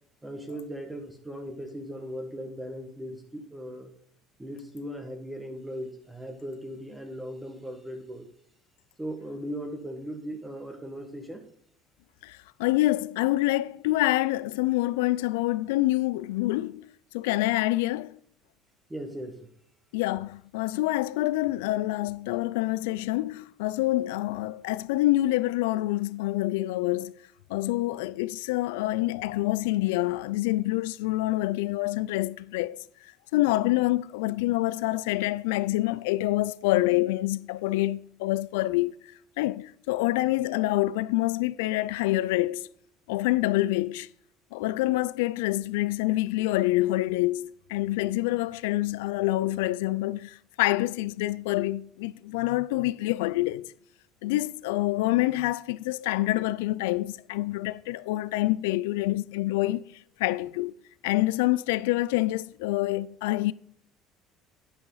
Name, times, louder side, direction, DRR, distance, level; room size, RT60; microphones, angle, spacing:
voice 1, 0.2-3.9 4.4-8.3 9.0-11.4 18.9-19.5, equal, 10° right, 1.6 m, -38 dB
voice 2, 12.2-16.9 17.1-18.2 19.9-27.2 27.5-32.8 33.3-38.9 39.4-42.7 43.1-44.1 44.5-53.7 54.2-60.7 61.0-63.5, left 17 dB, 90° left, 0.4 m, -26 dB
9.6 x 8.6 x 4.0 m
supercardioid pair, 95°, 0 cm